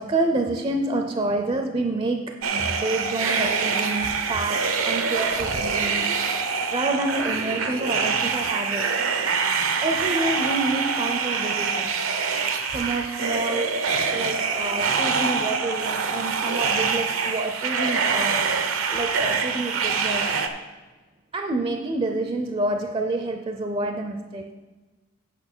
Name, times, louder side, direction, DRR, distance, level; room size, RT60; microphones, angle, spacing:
voice 1, 0.0-6.1 6.7-9.0 9.8-12.0 12.7-18.6 18.9-20.4 21.3-24.5, right 2 dB, 25° right, 5 dB, 0.5 m, -28 dB
sound 1, 2.4-20.5, right 5 dB, 80° right, 0.8 m, -25 dB
9.0 x 5.6 x 6.1 m, 1.2 s
head